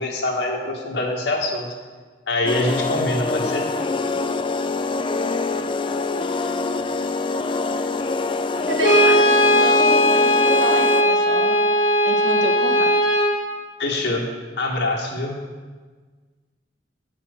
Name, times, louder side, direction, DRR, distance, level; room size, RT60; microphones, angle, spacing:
voice 1, 0.0-1.7 2.3-3.7 13.8-14.2 14.6-15.4, left 2 dB, 80° left, -1 dB, 1.7 m, -24 dB
sound 1, 2.5-11.2, left 3 dB, 30° left, 0.4 m, -25 dB
voice 2, 8.7-11.7 12.0-12.9, right 1 dB, 85° right, 2 dB, 1.3 m, -29 dB
Brass instrument, 8.8-13.4, equal, 45° left, 2.2 m, -17 dB
9.3 x 5.8 x 6.5 m, 1.4 s
head